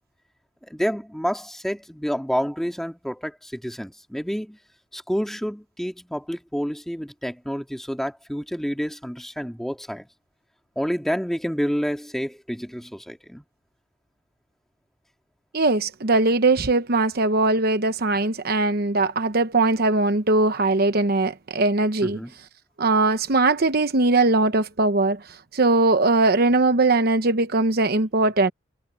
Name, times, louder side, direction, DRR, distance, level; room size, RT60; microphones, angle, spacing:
voice 1, 0.7-4.6 4.9-10.1 10.8-13.4 22.0-22.3, equal, ahead, 2.6 m, -29 dB
voice 2, 15.5-22.2 22.8-25.2 25.5-28.5, right 2 dB, 55° right, 1.0 m, -20 dB
head